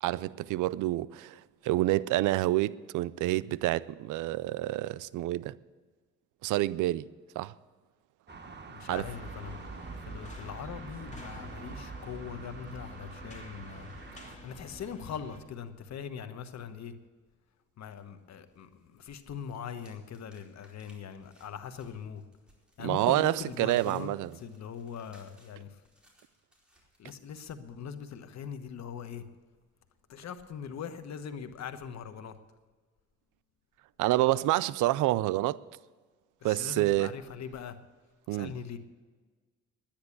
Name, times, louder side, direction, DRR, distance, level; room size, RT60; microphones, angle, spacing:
voice 1, 0.0-5.5 6.4-7.1 7.4-7.5 8.9-9.1 22.8-24.3 34.0-35.6 36.4-37.1 38.3-38.6, right 16 dB, 85° right, 0.5 m, -28 dB
sound 1, 8.3-14.4, right 4 dB, 35° right, 1.4 m, -47 dB
voice 2, 8.7-9.6 10.0-13.9 14.2-16.9 17.8-22.2 22.8-24.1 24.4-25.8 27.0-29.2 30.1-32.4 36.4-37.8 38.3-38.8, left 7 dB, 60° left, 1.2 m, -41 dB
sound 2, 8.9-15.4, right 1 dB, 25° left, 2.4 m, -46 dB
sound 3, 18.0-18.9 19.1-27.0, right 1 dB, 5° right, 4.4 m, -63 dB
10.5 x 10.5 x 8.5 m
cardioid pair, 90°, 30 cm